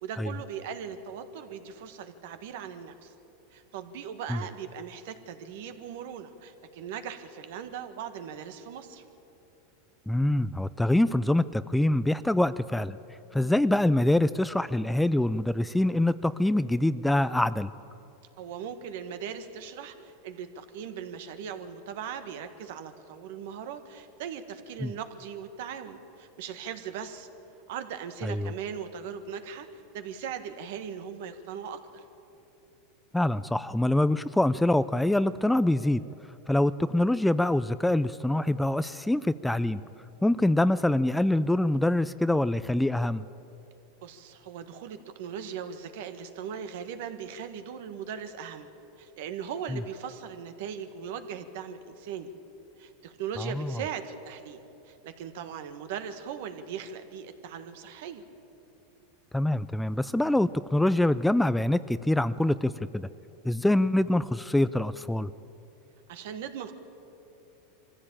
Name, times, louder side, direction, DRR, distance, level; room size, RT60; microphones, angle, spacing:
voice 1, 0.0-3.1 3.5-9.0 13.3-13.5 18.4-27.3 27.7-32.0 44.0-48.7 49.0-52.3 52.8-54.6 54.8-58.2 66.1-66.7, right 7 dB, 70° right, 9 dB, 1.6 m, -39 dB
voice 2, 10.1-13.0 13.3-17.7 24.8-24.9 28.2-28.5 33.1-36.0 36.5-39.8 40.2-43.2 49.7-49.8 53.4-53.8 59.3-63.1 63.4-65.3, left 1 dB, 5° left, 15 dB, 0.4 m, -25 dB
23.0 x 15.0 x 8.8 m, 3.0 s
supercardioid pair, 135°, 0 cm